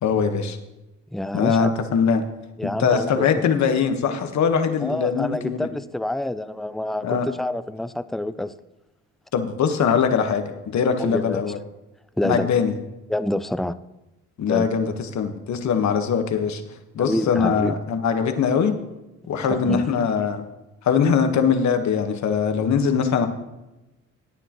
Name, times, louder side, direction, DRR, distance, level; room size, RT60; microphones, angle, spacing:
voice 1, 0.0-0.6 1.3-2.2 2.6-5.7 7.0-7.3 9.3-11.6 12.2-12.7 14.4-16.6 16.9-18.7 19.3-20.4 20.8-23.3, left 6 dB, 65° left, 6 dB, 1.4 m, -22 dB
voice 2, 1.1-1.7 2.6-3.5 4.8-8.5 11.0-11.5 12.2-12.5 13.1-13.7 14.5-14.7 17.0-17.8 19.4-19.9, left 1 dB, ahead, 13 dB, 0.4 m, -27 dB
17.5 x 9.0 x 3.0 m, 0.98 s
cardioid pair, 90°, 30 cm